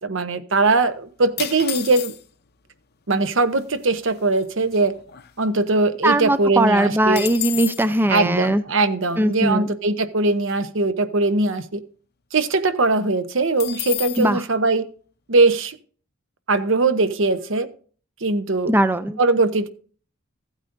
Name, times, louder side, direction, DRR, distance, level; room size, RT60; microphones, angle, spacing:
voice 1, 0.0-2.1 3.1-5.0 5.4-7.3 8.1-11.8 12.3-14.8 15.3-15.8 16.5-17.7 18.2-18.7 19.2-19.7, right 3 dB, 70° right, 10 dB, 0.9 m, -20 dB
sound 1, 1.4-2.5 3.3-3.4 3.5-3.9 4.3-5.8 6.1-6.2 6.5-7.9 13.6-14.3, left 13 dB, 50° left, 0.7 m, -31 dB
voice 2, 6.0-8.6 9.2-9.7 14.2-14.4 18.7-19.2, right 1 dB, 10° right, 11 dB, 0.4 m, -20 dB
15.0 x 9.0 x 2.6 m, 0.42 s
head